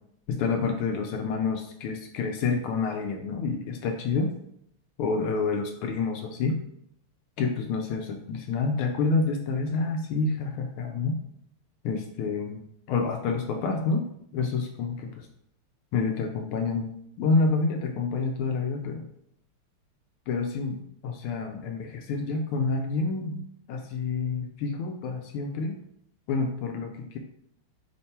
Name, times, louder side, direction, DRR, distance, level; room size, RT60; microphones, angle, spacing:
voice 1, 0.3-4.3 5.0-6.6 7.4-11.2 11.8-15.3 15.9-16.9 17.2-19.1 20.3-20.8 21.0-23.4 23.7-25.7 26.3-27.2, left 4 dB, 80° left, 3 dB, 1.5 m, -28 dB
5.2 x 2.2 x 4.2 m, 0.70 s
omnidirectional pair, 2.4 m